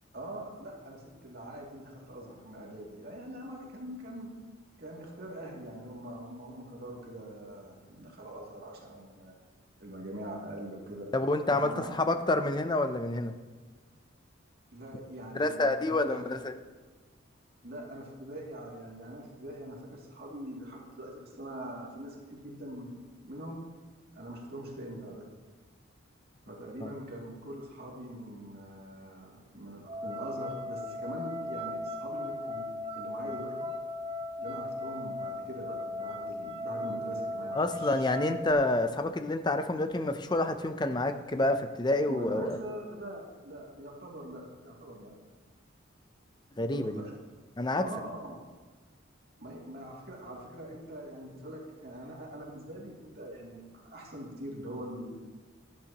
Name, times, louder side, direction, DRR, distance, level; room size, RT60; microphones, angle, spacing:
voice 1, 0.1-4.3 4.8-9.3 9.8-11.1 11.5-12.0 14.7-16.4 17.6-22.9 23.2-23.6 24.1-25.3 26.5-33.5 34.4-38.0 42.1-45.1 46.6-47.1 47.8-48.4 49.4-55.1, right 1 dB, 50° right, -3 dB, 2.5 m, -43 dB
voice 2, 11.1-13.3 15.3-16.5 26.8-26.9 37.5-42.6 46.6-46.9 47.6-47.8, left 2 dB, 20° left, 8 dB, 0.5 m, -28 dB
sound 1, 29.8-38.5, left 1 dB, 30° right, 0.6 m, -37 dB
15.5 x 12.0 x 3.0 m, 1.4 s
head